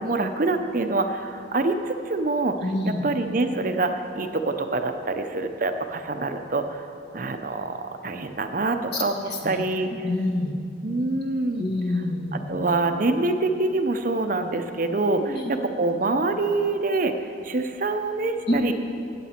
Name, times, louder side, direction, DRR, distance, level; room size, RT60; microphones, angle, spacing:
voice 1, 0.0-2.6 2.9-6.9 7.1-9.9 10.8-11.7 12.5-17.1 17.4-18.7, right 2 dB, 45° right, 7 dB, 0.6 m, -25 dB
voice 2, 2.6-3.0 8.9-9.0 9.4-9.6 10.0-10.5 11.5-12.4 15.2-15.5 18.5-18.7, left 1 dB, 60° left, 0 dB, 1.7 m, -26 dB
16.5 x 8.5 x 4.4 m, 2.5 s
head